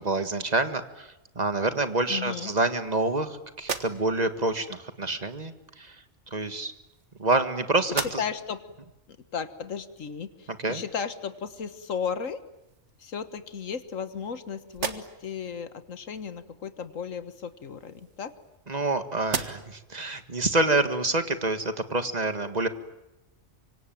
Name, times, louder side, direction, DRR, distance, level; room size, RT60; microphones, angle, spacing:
voice 1, 0.0-6.7 7.2-8.2 10.5-10.8 18.7-22.7, right 2 dB, 35° right, 10 dB, 1.8 m, -27 dB
voice 2, 2.1-2.5 7.9-8.6 9.3-12.4 13.0-18.3, left 6 dB, 80° left, 12 dB, 1.8 m, -35 dB
sound 1, 3.5-4.4 5.5-5.7 6.6-7.5 7.8-8.6 9.1-9.2 11.8-11.9 12.4-13.0 13.6-14.4 14.7-15.4 17.4-18.9 19.2-19.9, right 5 dB, 65° right, 1.9 m, -37 dB
25.5 x 25.0 x 9.2 m, 0.95 s
omnidirectional pair, 1.3 m